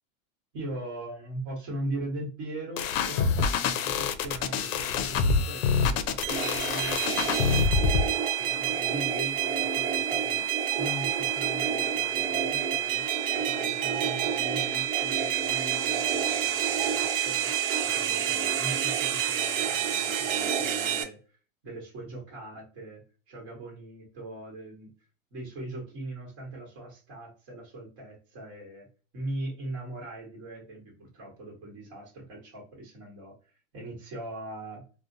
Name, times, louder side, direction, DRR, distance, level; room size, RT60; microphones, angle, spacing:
voice 1, 0.5-8.1 8.4-10.5 10.8-13.0 13.3-17.5 17.8-21.2 21.6-24.9 25.3-28.9 29.1-33.3 33.7-34.8, right 1 dB, 30° right, -2 dB, 1.1 m, -40 dB
sound 1, 2.8-8.1, left 5 dB, 75° left, 0.5 m, -26 dB
sound 2, 6.2-21.0, right 9 dB, 80° right, 0.8 m, -28 dB
2.5 x 2.1 x 2.6 m, 0.35 s
supercardioid pair, 180°, 40 cm